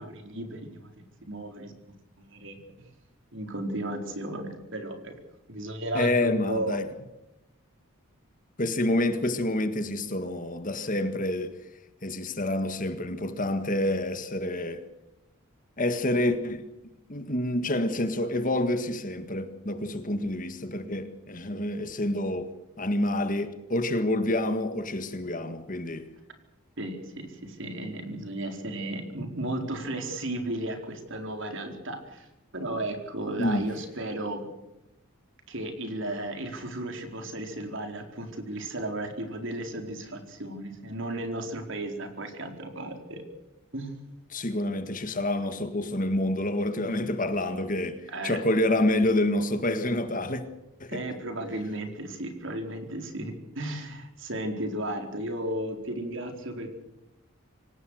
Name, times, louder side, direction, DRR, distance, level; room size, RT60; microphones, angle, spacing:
voice 1, 0.0-1.7 2.2-2.9 3.3-5.1 5.5-6.8 26.8-32.3 32.5-34.5 35.5-43.2 43.7-44.0 48.1-48.4 50.9-56.7, right 1 dB, 55° right, 4.5 m, -34 dB
voice 2, 5.9-6.9 8.6-11.5 12.0-14.8 15.8-16.7 17.1-22.5 22.8-26.1 33.4-33.7 44.3-50.4 50.8-51.0, left 1 dB, 35° left, 1.9 m, -28 dB
26.0 x 18.0 x 6.5 m
head